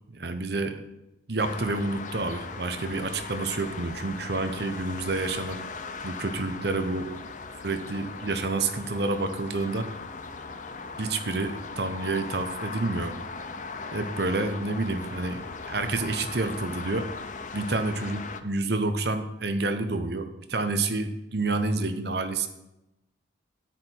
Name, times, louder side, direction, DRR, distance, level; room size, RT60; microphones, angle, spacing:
voice 1, 0.1-0.8 1.3-5.6 6.0-7.1 7.6-9.9 11.0-13.2 13.9-17.1 17.5-22.5, right 3 dB, 60° right, 8 dB, 0.9 m, -29 dB
sound 1, 1.4-18.4, left 4 dB, 40° left, 0.6 m, -39 dB
10.0 x 8.2 x 4.6 m, 0.92 s
head